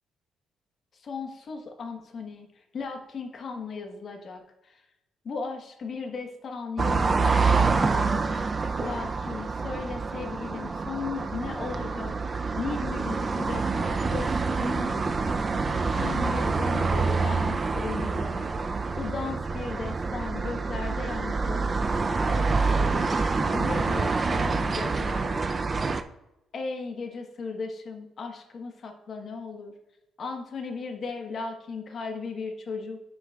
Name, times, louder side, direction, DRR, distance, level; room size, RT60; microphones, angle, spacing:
voice 1, 0.9-4.8 5.2-8.5 8.8-15.5 15.9-18.5 19.0-22.0 22.3-25.6 26.5-29.7 30.2-33.0, left 4 dB, 50° left, 4 dB, 1.3 m, -36 dB
sound 1, 6.8-26.0, right 4 dB, 35° right, 0.5 m, -27 dB
9.6 x 6.2 x 2.4 m, 0.91 s
cardioid pair, 90°, 0 cm